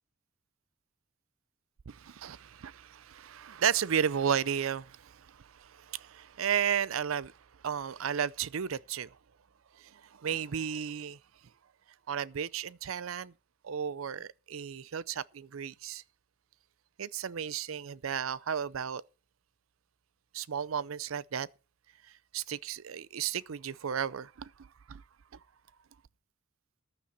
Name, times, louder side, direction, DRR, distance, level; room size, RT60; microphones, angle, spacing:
voice 1, 1.9-7.3 7.6-9.2 9.9-11.2 12.1-13.3 13.6-16.0 17.0-19.0 20.3-21.5 22.3-24.5 24.9-25.0, right 8 dB, 90° right, 0.5 m, -33 dB
14.5 x 10.0 x 4.3 m
head